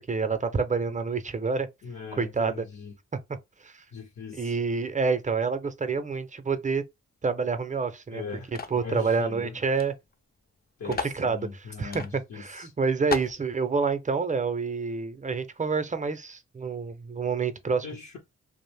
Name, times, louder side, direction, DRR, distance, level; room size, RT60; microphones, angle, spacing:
voice 1, 0.0-1.7 2.1-2.5 3.6-3.8 4.3-6.8 7.2-8.2 8.7-9.9 10.8-11.4 11.8-12.0 12.3-17.9, right 4 dB, 25° right, 0.5 m, -28 dB
voice 2, 1.8-2.9 3.9-4.6 8.1-9.6 10.8-12.7 17.8-18.2, left 5 dB, 65° left, 0.8 m, -40 dB
sound 1, 8.6-8.9 9.8-9.9 10.1-10.2 10.9-11.2 11.9-12.1 12.6-12.7 13.1-13.4, left 4 dB, 35° left, 0.4 m, -33 dB
2.4 x 2.0 x 3.3 m
cardioid pair, 50°, 29 cm